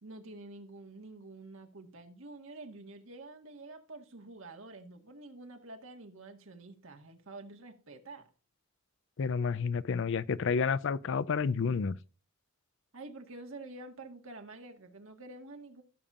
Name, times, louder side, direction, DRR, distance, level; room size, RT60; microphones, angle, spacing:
voice 1, 0.0-8.3 12.9-15.8, right 2 dB, 75° right, 1.7 m, -48 dB
voice 2, 9.2-12.0, left 5 dB, 65° left, 0.5 m, -30 dB
15.5 x 7.0 x 2.5 m
head